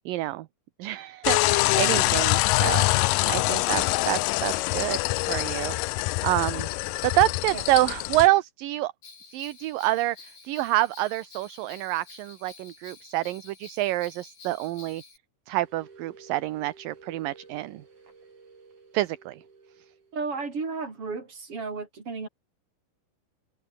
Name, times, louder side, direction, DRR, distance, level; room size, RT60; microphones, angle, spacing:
voice 1, 0.1-0.5 0.8-5.8 6.2-6.7 7.0-8.9 9.3-15.0 15.5-17.8 18.9-19.4, right 16 dB, 75° right, 2.4 m, -27 dB
sound 1, 1.2-8.3, left 22 dB, 85° left, 1.9 m, -24 dB
Bell, 9.0-15.2, left 4 dB, 60° left, 8.0 m, -49 dB
sound 2, 15.6-20.5, right 4 dB, 50° right, 6.6 m, -53 dB
voice 2, 20.1-22.3, right 4 dB, 35° right, 5.7 m, -33 dB
omnidirectional pair, 4.4 m